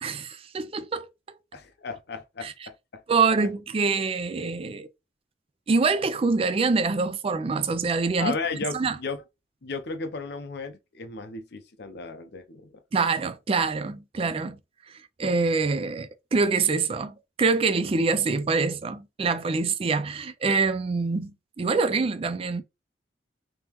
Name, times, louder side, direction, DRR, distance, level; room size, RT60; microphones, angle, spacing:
voice 1, 0.0-1.1 2.4-2.5 3.1-4.9 5.7-8.4 8.7-9.0 12.9-14.6 15.2-22.6, right 4 dB, 30° right, 0.3 m, -25 dB
voice 2, 1.5-3.0 8.2-9.2 9.6-12.7, left 4 dB, 60° left, 0.6 m, -34 dB
3.5 x 2.9 x 2.9 m
head